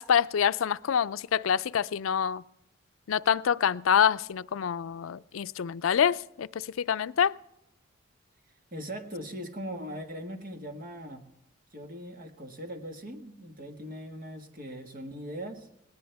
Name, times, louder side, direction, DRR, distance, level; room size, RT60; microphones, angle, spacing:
voice 1, 0.0-2.4 3.1-7.3, left 8 dB, 90° left, 0.4 m, -26 dB
voice 2, 8.7-11.2 11.7-15.7, equal, 45° right, 1.7 m, -40 dB
19.0 x 18.0 x 3.5 m
head